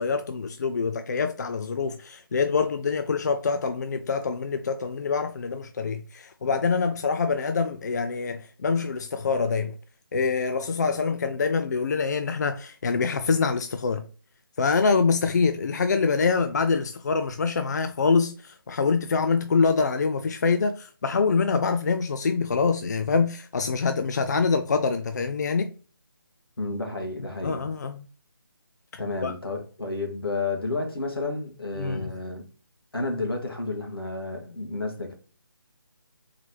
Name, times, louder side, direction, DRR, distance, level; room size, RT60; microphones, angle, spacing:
voice 1, 0.0-9.8 10.1-14.0 14.6-25.7 27.4-28.1 29.2-29.3 31.8-32.1, left 4 dB, 50° left, 0.4 m, -25 dB
voice 2, 26.6-27.7 29.0-32.4 32.9-35.1, left 3 dB, 85° left, 1.8 m, -31 dB
4.6 x 3.8 x 3.0 m
figure-of-eight pair, 155°, 12 cm